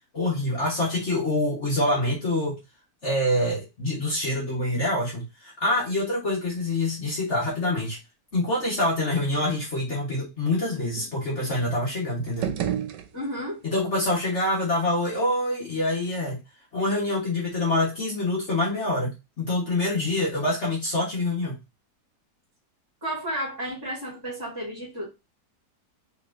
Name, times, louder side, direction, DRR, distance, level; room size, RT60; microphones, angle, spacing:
voice 1, 0.1-2.6 3.0-8.0 8.3-12.5 13.6-16.4 16.7-21.6, left 1 dB, 45° left, 1.6 m, -26 dB
sound 1, 12.2-13.7, right 10 dB, 90° right, 1.3 m, -31 dB
voice 2, 13.1-13.6 23.0-25.1, equal, 15° right, 2.1 m, -32 dB
4.1 x 3.5 x 2.6 m
omnidirectional pair, 1.8 m